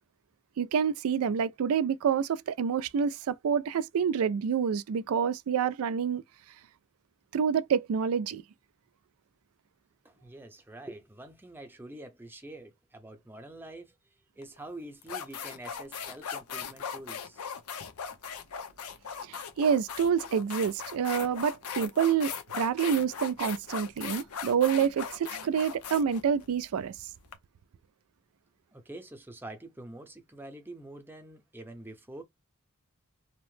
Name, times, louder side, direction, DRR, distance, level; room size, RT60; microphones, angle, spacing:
voice 1, 0.6-6.2 7.3-8.4 19.3-26.9, right 7 dB, 70° right, 0.3 m, -28 dB
voice 2, 10.0-14.0 14.4-17.4 28.7-32.2, right 1 dB, 10° right, 0.6 m, -46 dB
sound 1, 14.4-14.6 15.0-27.3, left 7 dB, 85° left, 0.6 m, -39 dB
2.7 x 2.0 x 3.1 m
head